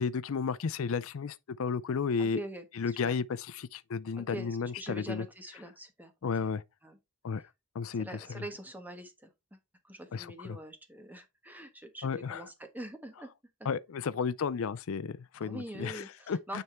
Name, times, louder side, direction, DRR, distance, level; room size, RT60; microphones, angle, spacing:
voice 1, 0.0-2.4 2.7-5.2 6.2-6.6 7.2-7.4 7.7-8.4 10.1-10.6 12.0-12.5 13.6-16.6, left 5 dB, 65° left, 0.4 m, -33 dB
voice 2, 2.2-2.7 3.0-3.2 4.2-6.5 6.8-7.0 7.4-7.5 8.0-9.6 9.8-13.3 13.6-13.7 15.4-16.6, right 1 dB, 10° right, 1.2 m, -44 dB
9.5 x 3.5 x 4.2 m
head